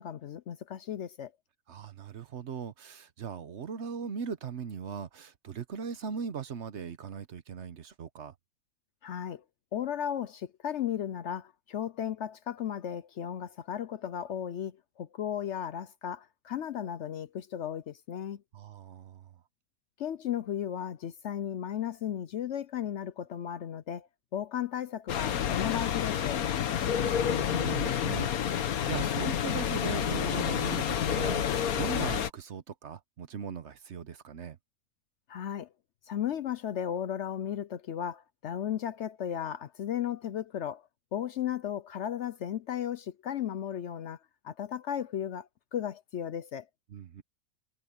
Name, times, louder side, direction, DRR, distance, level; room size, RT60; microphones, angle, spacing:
voice 1, 0.0-1.3 9.0-9.4 9.7-18.4 20.0-26.4 29.0-29.3 35.3-35.7 36.1-40.8 41.1-44.2 44.4-46.7, left 10 dB, 65° left, 0.8 m, -35 dB
voice 2, 1.7-8.3 18.5-19.3 26.8-34.6 46.9-47.2, right 7 dB, 55° right, 1.1 m, -39 dB
sound 1, 25.1-32.3, left 9 dB, 80° left, 1.4 m, -29 dB
omnidirectional pair, 1.5 m